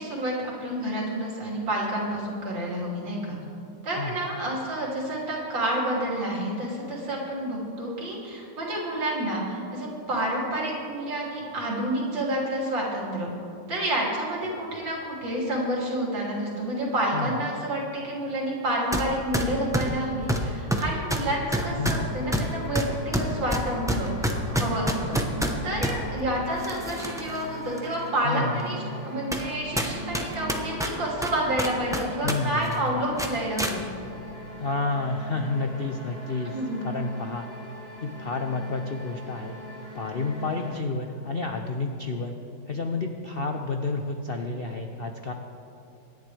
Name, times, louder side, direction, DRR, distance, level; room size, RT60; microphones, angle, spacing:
voice 1, 0.0-3.4 3.8-13.3 13.7-25.2 25.6-33.8 36.5-36.8, right 1 dB, 85° right, -4 dB, 3.7 m, -29 dB
sound 1, 18.9-19.1 19.3-26.0 26.6-27.4 27.8-27.9 28.6-28.7 29.3-29.5 29.8-32.4 32.6-32.8 33.2-33.7, equal, 5° right, 0.4 m, -27 dB
sound 2, 21.4-40.8, left 1 dB, 35° left, 1.6 m, -40 dB
voice 2, 21.8-22.1 28.2-29.0 32.2-33.0 34.6-36.6 36.8-37.5 38.0-39.6 39.9-42.3 42.7-45.3, left 3 dB, 65° left, 4 dB, 0.5 m, -30 dB
25.0 x 10.5 x 3.4 m, 2.8 s
omnidirectional pair, 2.0 m